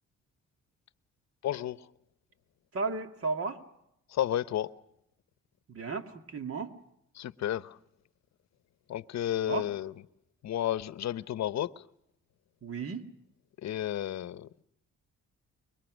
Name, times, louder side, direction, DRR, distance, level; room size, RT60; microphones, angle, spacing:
voice 1, 1.4-1.8 4.1-4.7 7.1-7.8 8.9-9.9 10.4-11.8 13.6-14.6, left 11 dB, 65° left, 0.9 m, -32 dB
voice 2, 2.7-3.6 5.7-6.7 9.4-9.7 12.6-13.1, right 4 dB, 50° right, 2.5 m, -34 dB
25.5 x 23.0 x 6.3 m
cardioid pair, 90°, 30 cm